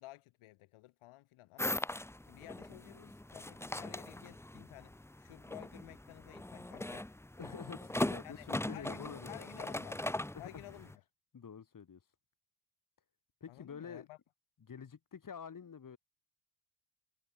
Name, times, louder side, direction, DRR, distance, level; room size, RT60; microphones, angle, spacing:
voice 1, 0.0-1.8 2.3-7.1 8.2-10.1 10.4-10.9 13.5-14.2, left 18 dB, 75° left, 2.4 m, -53 dB
sound 1, 1.6-10.9, left 1 dB, 5° left, 1.0 m, -40 dB
voice 2, 7.4-9.7 10.3-10.6 11.3-12.0 13.4-14.1 14.6-16.0, left 7 dB, 40° left, 5.2 m, -48 dB
supercardioid pair, 75°, 50 cm